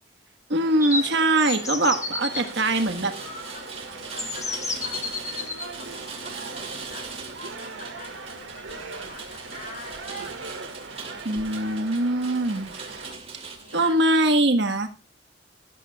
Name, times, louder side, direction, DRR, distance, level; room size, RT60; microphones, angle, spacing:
voice 1, 0.5-3.1 11.2-12.7 13.7-14.9, right 1 dB, 65° right, 7 dB, 1.5 m, -22 dB
sound 1, 0.5-13.1, right 3 dB, 80° right, 2.1 m, -40 dB
sound 2, 0.8-2.4 3.5-3.6 4.2-5.7, left 3 dB, 20° left, 1.4 m, -31 dB
Rain, 1.6-13.9, right 4 dB, 35° right, 2.6 m, -41 dB
voice 2, 3.1-3.8 4.1-10.5 13.6-14.0, left 3 dB, 45° left, 2 dB, 6.7 m, -46 dB
19.0 x 11.5 x 2.4 m, 0.28 s
head